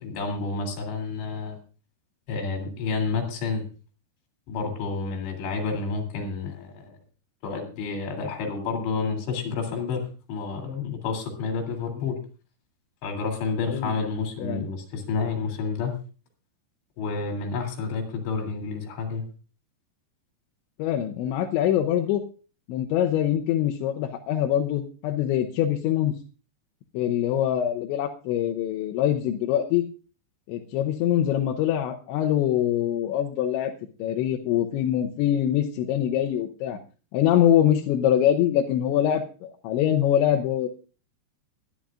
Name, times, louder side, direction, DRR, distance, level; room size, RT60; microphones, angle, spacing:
voice 1, 0.0-1.6 2.3-3.6 4.5-7.0 7.4-12.2 13.0-16.0 17.0-19.2, left 4 dB, 75° left, 4 dB, 5.3 m, -30 dB
voice 2, 20.8-22.2 22.7-26.2 26.9-29.8 30.5-33.7 34.0-36.8 37.1-40.7, left 11 dB, 90° left, 2 dB, 3.3 m, -24 dB
22.0 x 11.5 x 2.5 m, 0.36 s
omnidirectional pair, 5.1 m